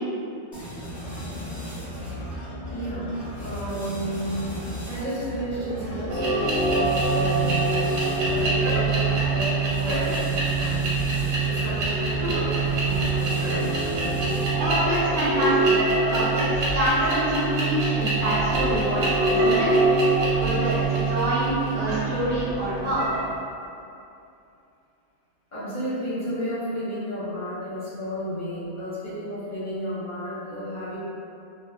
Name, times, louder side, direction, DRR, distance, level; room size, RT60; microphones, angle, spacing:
sound 1, 0.5-14.7, equal, 15° left, 0.8 m, -35 dB
voice 1, 2.7-4.6 4.9-10.8 11.4-13.8 25.5-31.0, equal, 45° left, -11 dB, 0.7 m, -32 dB
sound 2, 6.1-23.3, right 3 dB, 85° right, 1.1 m, -24 dB
voice 2, 14.6-15.7 16.1-19.7 20.0-23.2, right 1 dB, 65° right, -8 dB, 0.8 m, -26 dB
2.2 x 2.1 x 3.2 m, 2.6 s
omnidirectional pair, 1.3 m